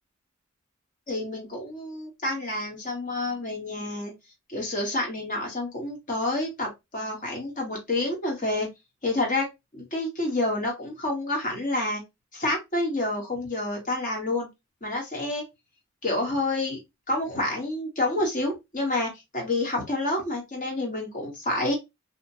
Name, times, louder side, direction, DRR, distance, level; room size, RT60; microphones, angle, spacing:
voice 1, 1.1-4.1 4.5-8.7 9.0-9.5 9.7-12.0 12.3-14.5 14.8-15.4 16.0-16.8 17.1-21.8, left 2 dB, 40° left, 1.3 m, -28 dB
2.9 x 2.4 x 2.7 m
head